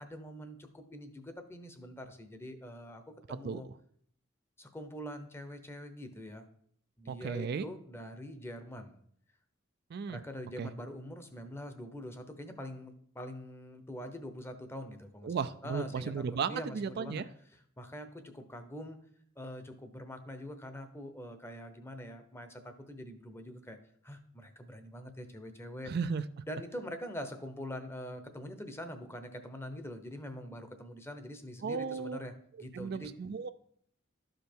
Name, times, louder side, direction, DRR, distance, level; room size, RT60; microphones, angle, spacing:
voice 1, 0.0-3.0 3.3-3.7 4.6-6.5 7.0-9.0 10.1-17.2 17.8-19.0 19.4-23.8 24.0-25.9 26.5-32.3 32.6-33.1, equal, 10° left, 8 dB, 0.8 m, -44 dB
voice 2, 7.1-7.7 9.9-10.2 10.6-10.7 15.2-17.3 25.8-26.2 31.6-32.2 32.7-33.5, right 5 dB, 50° right, 12 dB, 0.3 m, -35 dB
12.5 x 5.2 x 4.5 m, 0.65 s
head